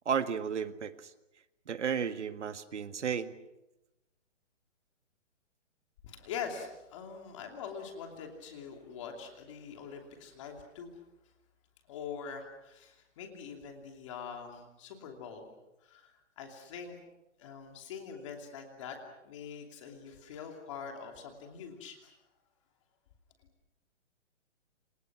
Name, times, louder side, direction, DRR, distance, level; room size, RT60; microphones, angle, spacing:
voice 1, 0.1-1.1 1.7-3.3, right 7 dB, 65° right, 10 dB, 1.9 m, -33 dB
voice 2, 6.0-11.0 11.9-15.5 15.8-17.0 17.4-19.0 19.2-22.1, left 6 dB, 25° left, 3 dB, 2.8 m, -44 dB
29.0 x 26.0 x 6.1 m, 0.93 s
hypercardioid pair, 175°, 38 cm